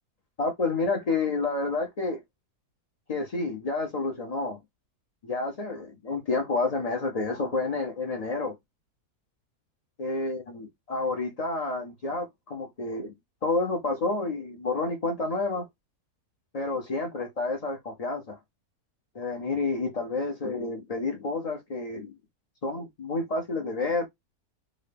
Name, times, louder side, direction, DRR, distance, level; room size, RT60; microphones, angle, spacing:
voice 1, 0.4-2.2 3.1-4.6 5.2-8.6 10.0-13.1 13.4-15.7 16.5-18.4 19.1-22.1 22.6-24.1, left 3 dB, 80° left, 0.3 m, -29 dB
3.7 x 2.2 x 3.4 m
omnidirectional pair, 1.6 m